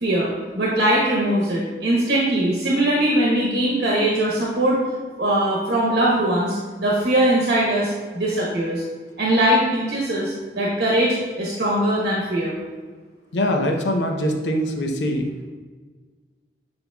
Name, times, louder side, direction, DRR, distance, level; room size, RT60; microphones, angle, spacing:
voice 1, 0.0-4.8 5.2-8.8 9.2-12.5, right 1 dB, 65° right, -5 dB, 1.1 m, -21 dB
voice 2, 13.3-15.3, equal, 85° left, 3 dB, 0.7 m, -23 dB
7.9 x 5.2 x 2.3 m, 1.4 s
head